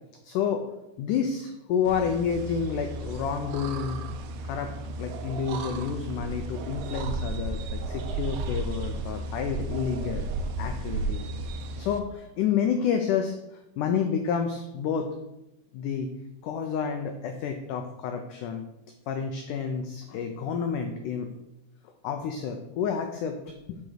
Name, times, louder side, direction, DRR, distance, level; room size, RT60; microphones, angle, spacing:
voice 1, 0.2-0.6 1.0-4.0 4.5-4.7 5.0-10.3 10.6-11.3 11.8-13.3 13.8-15.1 15.7-16.1 16.4-18.7 19.1-21.3 22.0-23.4 23.7-23.8, left 7 dB, 85° left, 5 dB, 1.8 m, -29 dB
sound 1, 1.9-12.0, right 2 dB, 75° right, 2.5 m, -34 dB
7.6 x 5.3 x 6.5 m, 0.92 s
omnidirectional pair, 4.5 m